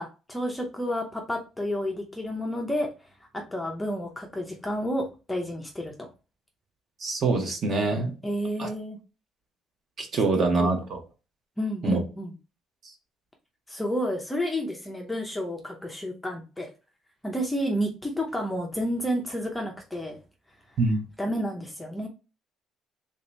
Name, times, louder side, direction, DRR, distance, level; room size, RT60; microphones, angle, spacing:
voice 1, 0.0-2.9 3.3-6.1 8.2-9.0 10.6-10.7 11.6-12.3 13.7-16.7 17.2-20.2 21.2-22.1, equal, 5° left, 0.5 m, -30 dB
voice 2, 7.0-8.1 8.6-8.7 10.0-11.0 11.8-12.0 20.8-21.0, right 3 dB, 35° right, 0.8 m, -24 dB
3.5 x 2.7 x 3.1 m
cardioid pair, 175°, 0 cm